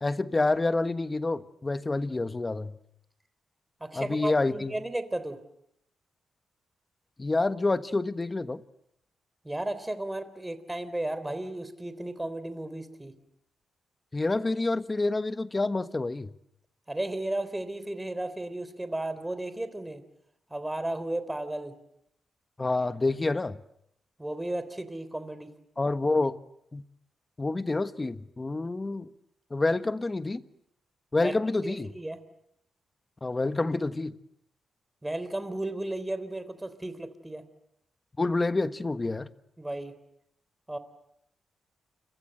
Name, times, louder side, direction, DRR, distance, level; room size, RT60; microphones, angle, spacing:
voice 1, 0.0-2.7 3.9-4.7 7.2-8.6 14.1-16.3 22.6-23.6 25.8-26.4 26.7-26.8 27.4-29.1 29.5-30.4 31.1-31.9 33.2-34.2 38.2-39.3, left 2 dB, 25° left, 1.3 m, -28 dB
voice 2, 3.8-5.4 9.4-13.1 16.9-20.0 20.5-21.7 24.2-25.5 31.2-31.3 31.6-32.2 35.0-37.4 39.6-39.9 40.7-40.8, right 1 dB, 10° right, 3.5 m, -34 dB
29.0 x 25.0 x 7.8 m
cardioid pair, 85°, 0 cm